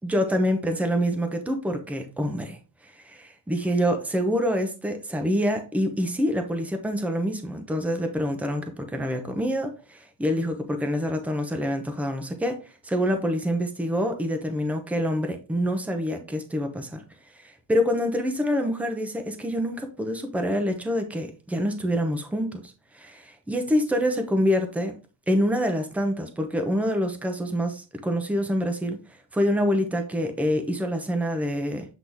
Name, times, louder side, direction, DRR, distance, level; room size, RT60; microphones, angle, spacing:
voice 1, 0.0-2.6 2.8-17.0 17.3-24.9 25.3-29.0 29.3-31.9, equal, 5° right, 0.8 m, -26 dB
7.9 x 3.9 x 3.4 m
cardioid pair, 170°, 41 cm